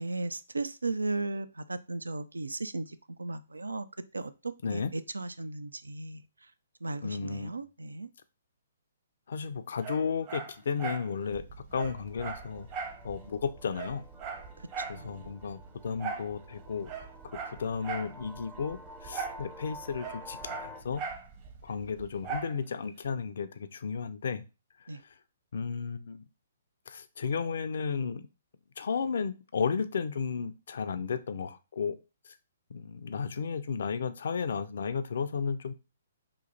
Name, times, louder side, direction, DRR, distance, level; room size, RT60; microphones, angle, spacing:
voice 1, 0.0-3.9 4.1-6.2 6.8-8.1 14.8-15.4 24.9-25.0, right 2 dB, 90° right, 0.3 m, -36 dB
voice 2, 7.0-7.5 9.3-11.4 11.7-12.7 13.0-14.0 14.9-16.9 17.5-20.4 20.6-21.0 21.6-24.4 25.5-26.2 26.9-28.3 28.8-32.0 32.3-32.4 32.7-35.7, left 6 dB, 65° left, 0.4 m, -33 dB
Dog, 9.8-11.1 11.4-11.5 11.7-13.0 13.4-13.5 13.7-15.0 16.0-16.3 16.8-18.1 19.1-19.4 19.7-21.3 22.2-22.6 23.0-23.1, right 5 dB, 35° right, 0.8 m, -38 dB
sound 1, 11.3-22.4, right 4 dB, 50° right, 1.1 m, -52 dB
sound 2, 11.8-20.8, left 1 dB, 10° right, 0.5 m, -50 dB
3.0 x 2.6 x 3.9 m
hypercardioid pair, 130°, 0 cm